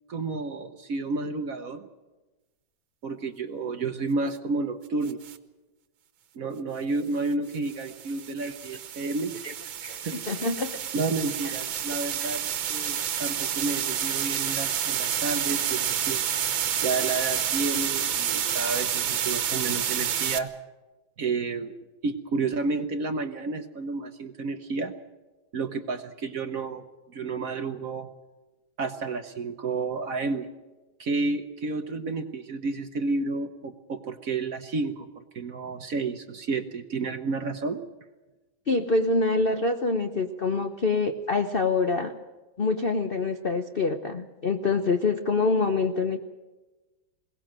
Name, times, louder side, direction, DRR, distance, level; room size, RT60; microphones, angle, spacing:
voice 1, 0.1-1.9 3.0-5.2 6.3-9.3 10.1-10.2 10.9-12.4 12.7-16.2 16.8-20.5 21.2-21.7 22.0-24.9 25.5-26.9 27.1-28.1 28.8-30.5 31.0-37.8, right 3 dB, 55° right, 8 dB, 1.1 m, -31 dB
sound 1, 5.1-5.4 7.5-20.4, right 9 dB, 70° right, 1.8 m, -29 dB
voice 2, 9.8-10.7 11.4-11.5 38.7-42.1 42.6-46.2, left 3 dB, 50° left, 6 dB, 0.6 m, -26 dB
21.5 x 18.5 x 7.5 m, 1.2 s
omnidirectional pair, 2.2 m